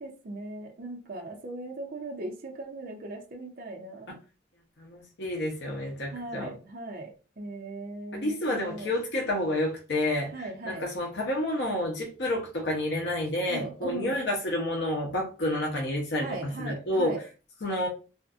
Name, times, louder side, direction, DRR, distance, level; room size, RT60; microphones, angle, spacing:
voice 1, 0.0-4.2 6.1-8.9 10.3-10.9 13.5-14.2 16.2-17.2, right 2 dB, 50° right, 0.5 m, -39 dB
voice 2, 4.8-6.5 8.1-10.3 10.7-16.3 16.6-17.1 17.6-17.9, left 1 dB, 60° left, 0.7 m, -29 dB
2.5 x 2.4 x 2.4 m
head